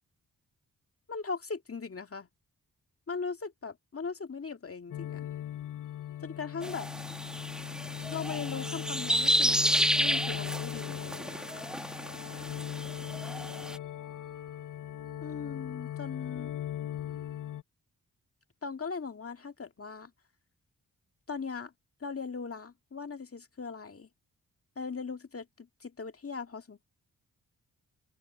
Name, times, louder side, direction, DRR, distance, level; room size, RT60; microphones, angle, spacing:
voice 1, 1.1-2.3 3.1-5.3 6.2-6.9 8.1-11.6 15.2-16.6 18.6-20.1 21.3-21.7 22.0-24.1 24.8-26.8, left 5 dB, 35° left, 2.0 m, -39 dB
sound 1, 4.9-17.6, left 11 dB, 55° left, 0.7 m, -39 dB
sound 2, 6.6-13.8, equal, ahead, 1.6 m, -31 dB
open air
supercardioid pair, 40°, 38 cm